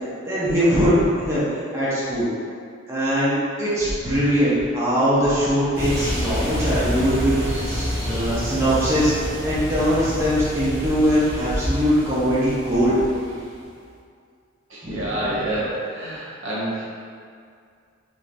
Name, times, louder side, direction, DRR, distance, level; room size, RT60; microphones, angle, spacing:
voice 1, 0.0-1.4 1.7-2.3 2.9-9.1 9.4-13.0 14.8-15.1, equal, 15° right, -10 dB, 0.6 m, -21 dB
sound 1, 5.7-13.6, equal, 50° right, 1.5 m, -28 dB
voice 2, 14.7-16.9, right 1 dB, 80° right, -8 dB, 0.8 m, -27 dB
3.1 x 2.5 x 2.5 m, 2.3 s
head